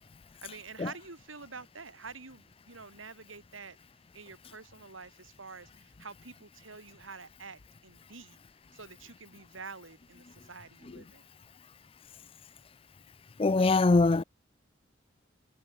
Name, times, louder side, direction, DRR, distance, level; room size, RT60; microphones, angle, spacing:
voice 1, 0.4-3.8 4.1-8.4 8.7-11.2, right 4 dB, 85° right, 3.3 m, -47 dB
voice 2, 13.4-14.2, left 3 dB, 30° left, 0.4 m, -22 dB
head